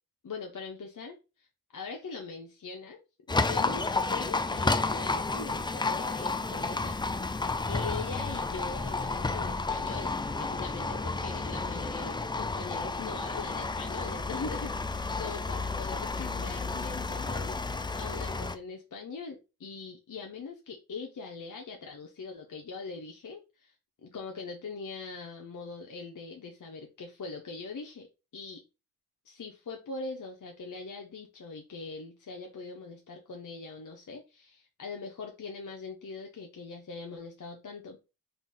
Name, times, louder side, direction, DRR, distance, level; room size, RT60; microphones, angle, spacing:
voice 1, 0.2-1.5 1.7-3.0 3.3-23.7 24.0-28.1 28.3-28.6 29.2-38.1, left 4 dB, 55° left, 0.8 m, -42 dB
Livestock farm animals working animals, 3.3-18.6, left 3 dB, 15° left, 0.3 m, -31 dB
3.8 x 2.5 x 3.6 m
cardioid pair, 45°, 38 cm